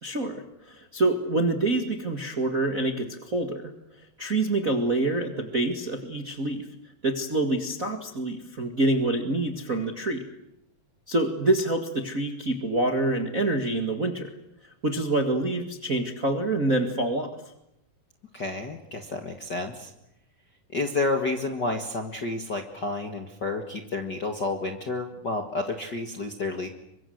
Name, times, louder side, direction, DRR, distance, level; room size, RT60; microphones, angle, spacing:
voice 1, 0.0-6.7 7.0-10.3 11.1-14.3 14.6-17.3, right 2 dB, 35° right, 5 dB, 1.4 m, -26 dB
voice 2, 18.3-19.9 20.7-26.7, left 2 dB, 40° left, 3 dB, 1.6 m, -30 dB
27.5 x 24.0 x 7.9 m, 0.83 s
omnidirectional pair, 4.4 m